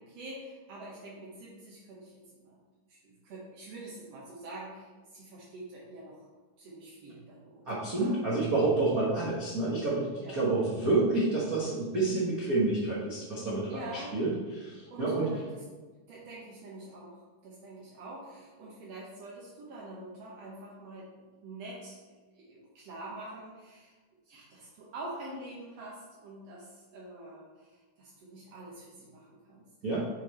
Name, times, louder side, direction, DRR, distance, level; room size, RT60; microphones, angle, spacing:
voice 1, 0.0-2.1 2.4-2.6 2.9-6.3 6.6-8.1 8.9-9.1 10.2-10.7 13.7-14.1 14.9-15.6 16.1-21.1 21.4-22.0 22.3-24.0 24.2-29.6, right 1 dB, 65° right, -5 dB, 1.6 m, -46 dB
voice 2, 7.7-15.3 29.8-30.1, right 2 dB, 90° right, -8 dB, 0.7 m, -29 dB
7.9 x 4.2 x 4.3 m, 1.3 s
omnidirectional pair, 4.0 m